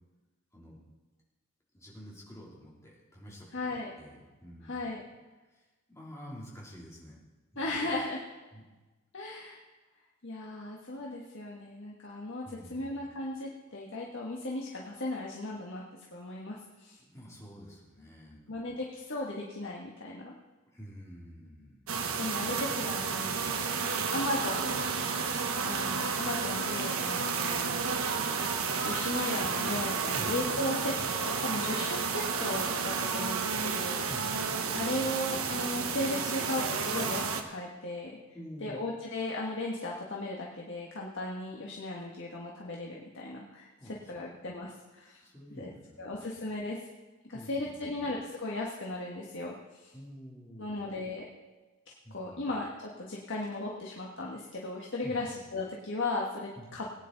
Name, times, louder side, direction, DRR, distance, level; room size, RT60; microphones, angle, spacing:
voice 1, 1.7-4.8 5.5-7.2 7.5-8.0 8.5-8.6 12.4-13.1 17.0-18.5 20.7-21.9 30.1-30.4 34.1-34.4 38.3-38.8 43.8-44.3 45.0-46.3 47.3-48.1 49.9-50.9 52.0-52.5 55.0-55.3 56.6-56.9, equal, 15° left, -4 dB, 3.0 m, -49 dB
voice 2, 3.5-3.9 4.6-5.0 7.6-8.2 9.1-9.6 10.2-12.4 12.7-15.8 16.1-17.0 18.5-20.3 22.2-24.8 25.6-27.9 28.8-34.0 34.7-38.2 38.6-43.7 44.1-45.2 45.6-45.7 46.0-46.8 47.3-49.9 50.6-51.2 52.1-56.9, left 2 dB, 60° left, -2 dB, 1.4 m, -36 dB
sound 1, 21.9-37.4, right 5 dB, 75° right, 1.1 m, -31 dB
19.5 x 9.6 x 3.9 m, 1.2 s
head